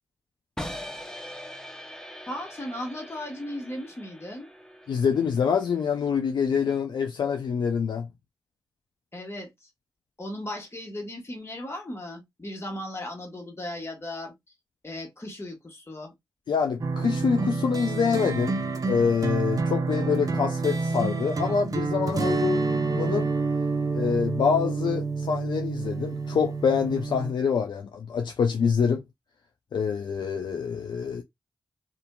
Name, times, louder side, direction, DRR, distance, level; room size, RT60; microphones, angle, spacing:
sound 1, 0.6-6.5, left 1 dB, 5° left, 0.6 m, -42 dB
voice 1, 2.3-4.5 9.1-9.5 10.2-14.3 14.8-16.1, left 1 dB, 30° left, 1.3 m, -36 dB
voice 2, 4.9-8.1 16.5-18.6 18.8-23.3 23.9-29.0 29.7-31.2, left 6 dB, 65° left, 0.4 m, -26 dB
sound 2, 16.8-27.3, right 3 dB, 45° right, 0.6 m, -28 dB
2.7 x 2.4 x 2.2 m
supercardioid pair, 45°, 8 cm